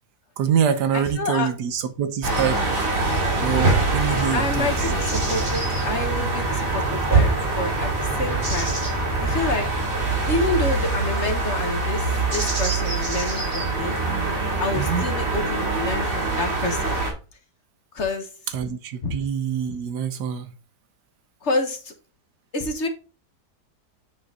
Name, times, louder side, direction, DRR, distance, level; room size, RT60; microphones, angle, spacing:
voice 1, 0.4-2.6 3.1-4.9 14.7-15.1 18.5-20.5, right 8 dB, 85° right, 1.5 m, -25 dB
voice 2, 0.9-1.5 4.1-8.8 9.2-9.6 10.3-12.1 12.3-13.9 14.6-16.9 17.9-18.3 19.0-19.2 21.4-21.9 22.5-22.9, left 2 dB, 45° left, 1.4 m, -28 dB
sound 1, 2.2-17.1, right 3 dB, 55° right, 2.7 m, -24 dB
sound 2, 3.3-10.8, left 2 dB, 5° left, 3.2 m, -33 dB
8.6 x 4.5 x 3.7 m
omnidirectional pair, 1.7 m